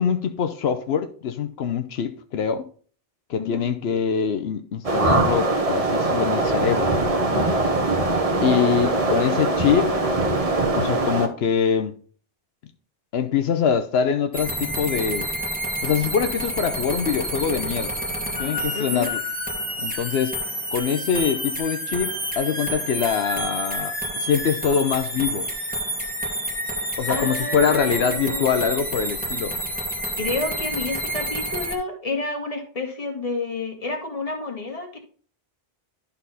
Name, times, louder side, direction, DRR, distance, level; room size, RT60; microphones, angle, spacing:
voice 1, 0.0-2.7 3.3-7.0 7.3-7.5 8.4-10.0 10.8-11.9 13.1-15.3 15.8-17.9 18.4-19.2 19.8-20.4 20.7-25.5 27.0-29.5, left 7 dB, 85° left, 0.9 m, -24 dB
voice 2, 3.4-3.7 8.3-9.0 18.7-19.1 27.1-28.7 30.2-35.0, left 3 dB, 35° left, 1.7 m, -30 dB
sound 1, 4.8-11.3, right 2 dB, 35° right, 1.1 m, -22 dB
sound 2, 14.3-31.7, equal, 10° right, 1.3 m, -29 dB
11.0 x 4.2 x 4.1 m
omnidirectional pair, 1.0 m